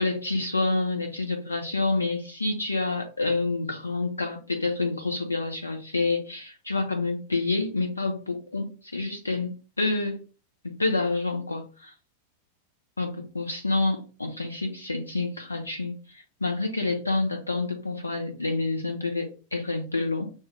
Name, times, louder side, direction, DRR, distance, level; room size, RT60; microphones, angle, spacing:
voice 1, 0.0-10.2 10.6-11.9 13.0-20.3, left 3 dB, 80° left, 0.8 m, -28 dB
5.9 x 2.3 x 3.2 m
figure-of-eight pair, 90°, 0 cm